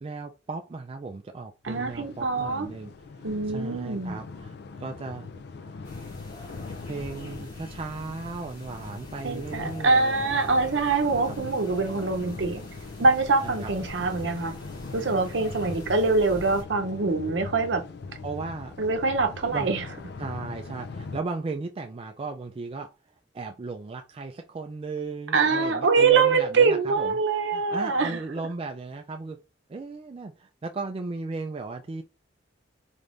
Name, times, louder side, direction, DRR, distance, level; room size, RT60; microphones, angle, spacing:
voice 1, 0.0-2.9 3.5-5.3 5.5-5.7 6.9-10.3 11.3-11.5 13.4-13.7 18.2-18.7 19.5-19.7 20.2-22.9 23.3-27.2 27.5-29.4 29.7-32.0, right 3 dB, 30° right, 0.3 m, -36 dB
sound 1, 1.6-21.2, left 4 dB, 60° left, 0.4 m, -41 dB
voice 2, 1.6-2.7 3.2-4.2 9.2-12.7 13.0-14.5 14.9-17.8 18.8-19.8 25.3-28.2, right 4 dB, 70° right, 0.7 m, -24 dB
sound 2, 5.8-16.6, left 1 dB, 40° left, 2.4 m, -44 dB
4.3 x 3.4 x 2.5 m
head